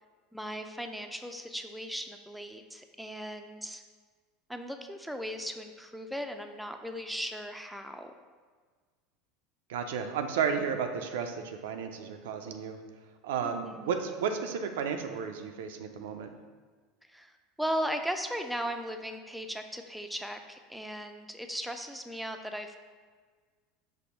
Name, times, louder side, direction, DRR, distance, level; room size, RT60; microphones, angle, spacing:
voice 1, 0.3-3.8 4.5-8.1 13.4-13.9 17.1-17.3 17.6-22.8, equal, ahead, 6 dB, 0.4 m, -37 dB
voice 2, 9.7-12.8 13.2-16.3, right 6 dB, 80° right, 6 dB, 0.4 m, -33 dB
5.2 x 2.1 x 4.3 m, 1.5 s
hypercardioid pair, 95°, 0 cm